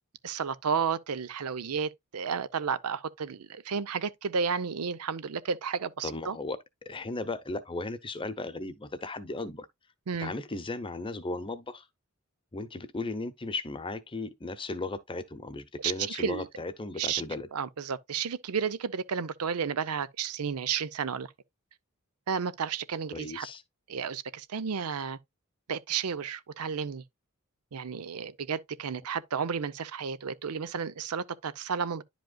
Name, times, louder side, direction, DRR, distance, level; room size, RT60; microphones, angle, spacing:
voice 1, 0.2-6.4 10.1-10.3 15.8-16.5 17.0-17.2 17.5-21.3 22.3-23.5 23.9-25.2 25.7-27.0 27.7-32.0, right 6 dB, 90° right, 0.6 m, -32 dB
voice 2, 6.0-6.6 6.9-9.7 10.2-11.8 12.5-17.5 23.1-23.6, left 2 dB, 25° left, 0.7 m, -36 dB
10.5 x 5.2 x 2.2 m
head